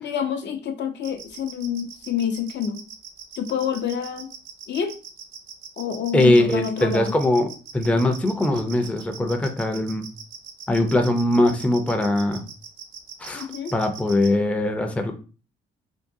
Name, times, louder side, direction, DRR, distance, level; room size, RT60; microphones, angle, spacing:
voice 1, 0.0-2.8 3.4-4.3 4.7-4.9 5.8-7.1 13.3-13.7, left 8 dB, 60° left, 6 dB, 0.6 m, -27 dB
sound 1, 1.0-14.3, right 7 dB, 75° right, 0.7 m, -40 dB
voice 2, 6.1-7.5 7.7-10.1 10.7-12.4 13.2-15.1, left 1 dB, 5° left, 5 dB, 0.5 m, -21 dB
3.6 x 2.2 x 2.6 m, 0.35 s
cardioid pair, 90°, 20 cm